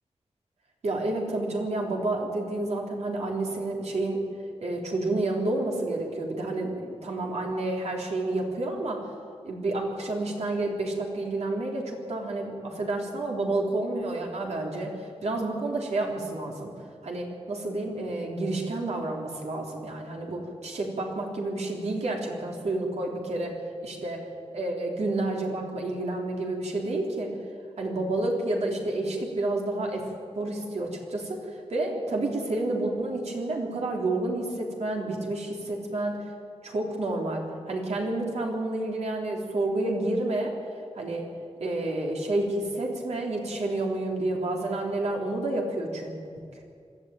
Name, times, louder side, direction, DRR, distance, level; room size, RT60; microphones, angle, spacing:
voice 1, 0.8-4.2 4.6-9.0 9.4-16.7 17.0-23.6 23.8-24.3 24.5-27.4 27.8-36.2 36.6-40.6 41.0-41.3 41.6-46.1, right 2 dB, 80° right, -1 dB, 3.8 m, -30 dB
25.5 x 12.5 x 9.1 m, 2.3 s
wide cardioid pair, 135°, 11 cm